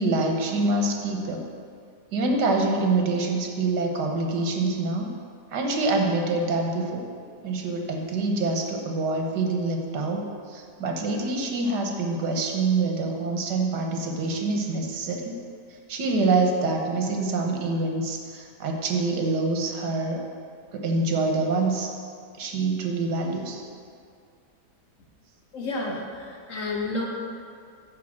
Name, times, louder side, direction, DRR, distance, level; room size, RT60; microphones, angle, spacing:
voice 1, 0.0-1.5 2.1-5.1 5.5-7.0 7.4-15.3 15.9-20.2 20.7-21.9 22.4-23.6, right 3 dB, 85° right, 2 dB, 1.6 m, -26 dB
voice 2, 25.5-27.0, left 2 dB, 55° left, -1 dB, 1.5 m, -30 dB
10.0 x 3.7 x 7.3 m, 2.3 s
omnidirectional pair, 1.7 m